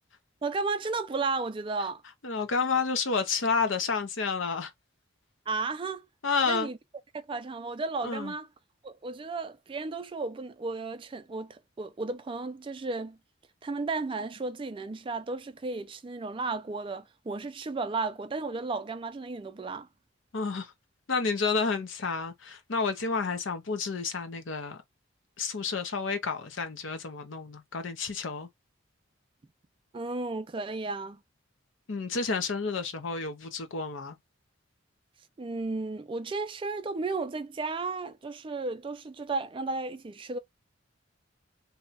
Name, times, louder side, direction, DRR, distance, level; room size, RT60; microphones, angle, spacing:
voice 1, 0.4-2.0 5.5-6.1 6.5-6.8 7.1-8.5 8.8-13.2 13.6-19.9 29.9-31.2 35.4-40.4, right 3 dB, 25° right, 0.3 m, -34 dB
voice 2, 2.2-4.7 6.2-6.7 8.0-8.3 20.3-20.7 21.1-24.8 25.4-28.5 31.9-34.2, left 4 dB, 70° left, 0.7 m, -30 dB
2.8 x 2.3 x 4.0 m
head